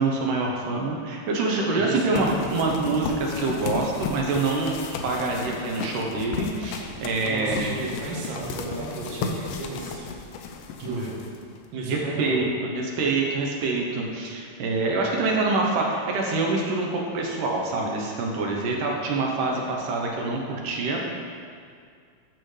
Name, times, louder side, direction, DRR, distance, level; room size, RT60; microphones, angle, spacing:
voice 1, 0.0-4.8 5.0-7.7 10.8-11.1 11.9-12.5 12.7-21.0, right 3 dB, 75° right, -1 dB, 2.4 m, -26 dB
voice 2, 1.8-2.5 7.3-10.1 10.8-11.2 11.7-12.5, right 2 dB, 50° right, -3 dB, 1.5 m, -33 dB
sound 1, 2.1-11.7, left 5 dB, 85° left, 2.4 m, -34 dB
12.0 x 6.8 x 3.2 m, 2.2 s
omnidirectional pair, 3.9 m